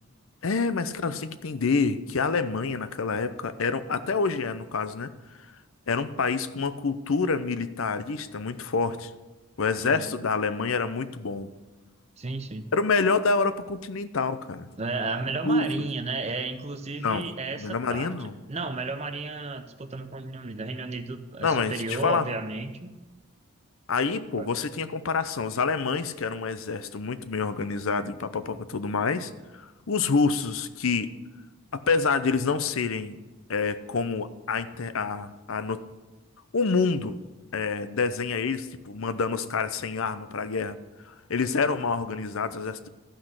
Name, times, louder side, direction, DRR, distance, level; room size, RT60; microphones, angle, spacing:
voice 1, 0.4-5.1 5.9-9.1 9.6-11.5 12.7-14.7 15.4-15.9 17.0-17.2 17.6-18.3 21.4-22.3 23.9-31.1 31.7-33.2 33.5-35.8 36.5-37.2 37.5-40.8 41.3-42.9, left 4 dB, 70° left, 13 dB, 0.6 m, -27 dB
voice 2, 9.8-10.1 12.2-12.7 14.8-23.0 24.4-24.5, right 3 dB, 30° right, 8 dB, 0.6 m, -33 dB
13.0 x 5.9 x 6.4 m, 1.2 s
head